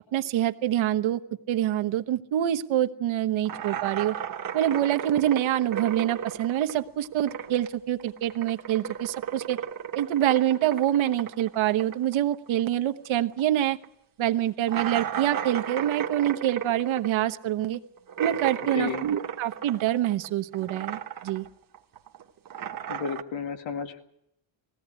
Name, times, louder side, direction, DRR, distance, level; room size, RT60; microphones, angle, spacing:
voice 1, 0.1-1.2 1.5-4.1 4.5-9.6 9.9-13.8 14.2-17.8 18.2-21.4, right 12 dB, 75° right, 9 dB, 1.2 m, -26 dB
sound 1, 3.5-7.8 8.0-13.1 13.3-13.4 13.8-13.9 14.7-20.3 20.5-21.5 21.7-23.2, right 9 dB, 45° right, 1.3 m, -34 dB
voice 2, 22.9-24.0, left 6 dB, 75° left, 6 dB, 2.2 m, -32 dB
20.5 x 16.5 x 9.9 m, 0.77 s
cardioid pair, 175°, 47 cm